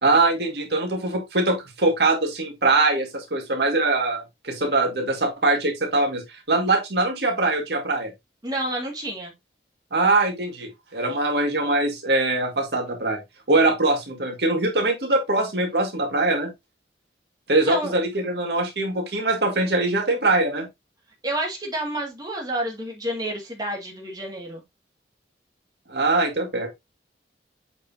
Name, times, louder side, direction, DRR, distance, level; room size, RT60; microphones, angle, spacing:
voice 1, 0.0-6.2 6.5-8.1 9.9-13.2 13.5-16.5 17.5-20.7 25.9-26.7, right 2 dB, 65° right, 2.1 m, -22 dB
voice 2, 8.4-9.3 17.7-17.9 21.2-24.6, right 1 dB, 20° right, 2.2 m, -29 dB
8.2 x 5.2 x 2.8 m
head